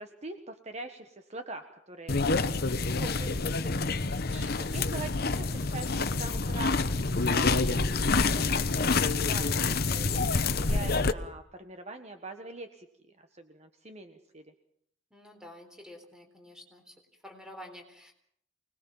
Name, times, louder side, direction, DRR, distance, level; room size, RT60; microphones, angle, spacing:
voice 1, 0.0-3.7 4.3-6.9 7.3-12.9 13.2-14.5, right 2 dB, 35° right, 6 dB, 1.5 m, -43 dB
sound 1, 2.1-11.1, left 3 dB, 55° left, 1.0 m, -27 dB
voice 2, 15.1-17.0 17.2-18.1, left 1 dB, 5° right, 4 dB, 3.9 m, -49 dB
25.5 x 20.0 x 7.3 m, 0.68 s
head